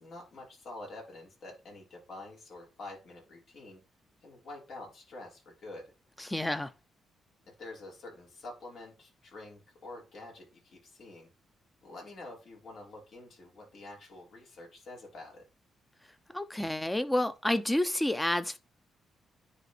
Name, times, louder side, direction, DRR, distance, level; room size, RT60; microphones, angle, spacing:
voice 1, 0.0-3.8 4.2-5.9 7.4-11.3 11.8-15.5, left 2 dB, 60° left, 4.4 m, -47 dB
voice 2, 6.2-6.7 16.3-18.6, left 1 dB, 10° left, 0.8 m, -29 dB
9.9 x 4.3 x 4.2 m
cardioid pair, 105°, 0 cm